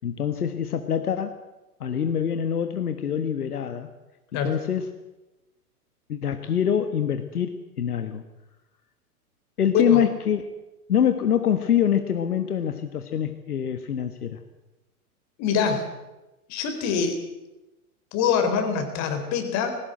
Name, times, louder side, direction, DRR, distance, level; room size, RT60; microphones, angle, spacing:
voice 1, 0.0-1.4 1.8-3.9 4.4-4.9 6.1-8.2 9.6-10.4 10.9-14.4, left 9 dB, 75° left, 8 dB, 1.5 m, -25 dB
voice 2, 15.4-15.9 16.5-17.2 18.1-19.8, left 6 dB, 35° left, 7 dB, 4.0 m, -24 dB
20.0 x 16.5 x 7.9 m, 1.0 s
figure-of-eight pair, 105°, 46 cm